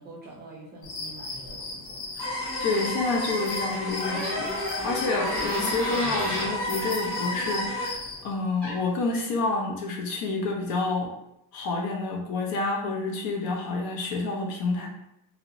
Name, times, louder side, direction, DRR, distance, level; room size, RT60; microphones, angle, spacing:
voice 1, 0.0-2.0, right 2 dB, 20° right, -5 dB, 0.5 m, -45 dB
sound 1, 0.8-8.2, left 3 dB, 85° left, 0.9 m, -38 dB
voice 2, 2.2-11.1 11.5-14.9, left 3 dB, 50° left, 0 dB, 0.5 m, -29 dB
sound 2, 2.2-7.9, left 1 dB, 25° left, 1.3 m, -31 dB
Door, 4.0-6.5 8.3-8.4 8.6-9.0, equal, 5° left, 0.9 m, -34 dB
2.7 x 2.0 x 2.5 m, 0.80 s
cardioid pair, 145°, 49 cm